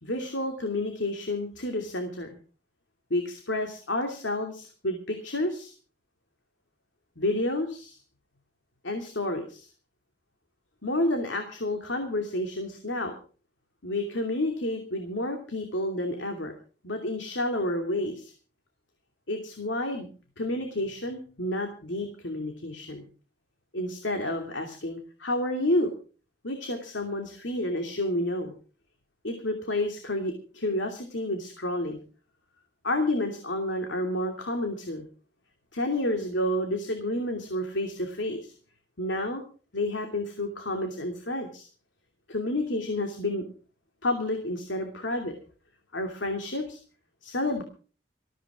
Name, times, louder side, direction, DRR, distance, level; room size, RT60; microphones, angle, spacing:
voice 1, 0.0-2.3 3.1-5.7 7.2-8.0 8.8-9.7 10.8-13.1 13.8-16.5 16.8-18.3 19.3-20.1 20.4-23.0 23.7-25.9 26.4-28.5 29.2-32.0 32.8-35.0 35.7-38.5 39.0-39.4 39.7-41.7 42.3-43.4 44.0-45.3 45.9-46.8 47.2-47.6, left 1 dB, 90° left, 4 dB, 2.8 m, -30 dB
20.0 x 15.0 x 3.7 m, 0.38 s
head